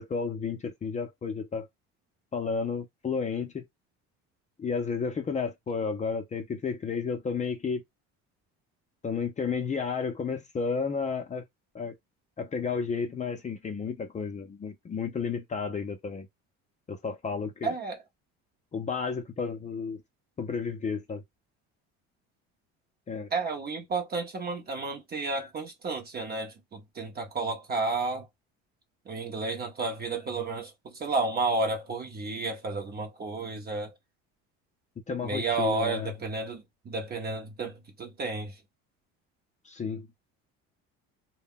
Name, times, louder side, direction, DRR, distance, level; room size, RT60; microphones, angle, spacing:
voice 1, 0.0-1.7 2.3-3.6 4.6-7.8 9.0-11.4 11.7-12.0 12.4-16.3 16.9-17.7 18.7-20.0 20.4-21.2 23.1-23.3 35.1-36.1 39.7-40.1, left 5 dB, 25° left, 0.5 m, -32 dB
voice 2, 17.6-18.0 23.3-28.3 29.1-33.9 35.2-38.6, right 3 dB, 30° right, 0.6 m, -32 dB
2.2 x 2.1 x 3.5 m
cardioid pair, 115°, 32 cm